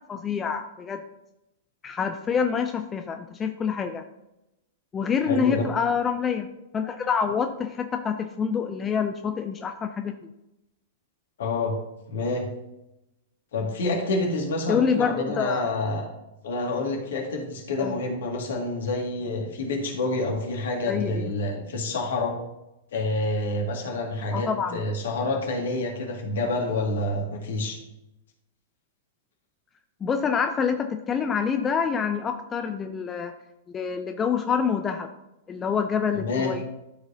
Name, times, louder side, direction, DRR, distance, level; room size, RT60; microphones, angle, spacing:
voice 1, 0.1-1.0 1.8-4.0 4.9-6.5 6.7-10.1 14.7-15.7 17.8-18.0 20.9-21.3 24.3-24.8 30.0-33.3 33.7-35.1 35.5-36.7, left 6 dB, 20° left, 6 dB, 0.5 m, -26 dB
voice 2, 5.3-5.7 11.4-11.7 12.1-12.5 13.5-16.1 16.4-22.4 22.9-27.8 36.1-36.5, left 2 dB, 65° left, 1 dB, 2.0 m, -28 dB
12.5 x 4.8 x 2.7 m, 0.91 s
figure-of-eight pair, 105°, 0 cm